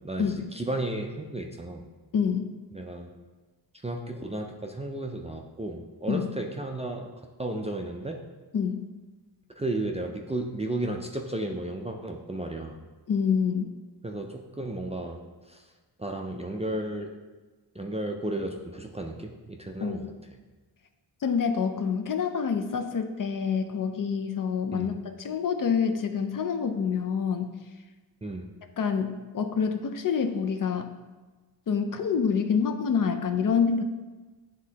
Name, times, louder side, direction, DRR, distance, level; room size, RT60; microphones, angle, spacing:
voice 1, 0.0-1.8 2.7-3.1 3.8-8.2 9.6-12.8 14.0-15.7 16.0-17.1 17.7-20.1 24.7-24.9 28.2-28.5, right 1 dB, 15° right, 1 dB, 0.4 m, -34 dB
voice 2, 2.1-2.5 6.1-6.3 8.5-8.9 13.1-13.7 19.8-20.0 21.2-27.5 28.8-30.9 31.7-33.8, left 6 dB, 50° left, 6 dB, 0.5 m, -27 dB
9.3 x 3.5 x 2.8 m, 1.3 s
wide cardioid pair, 105°, 44 cm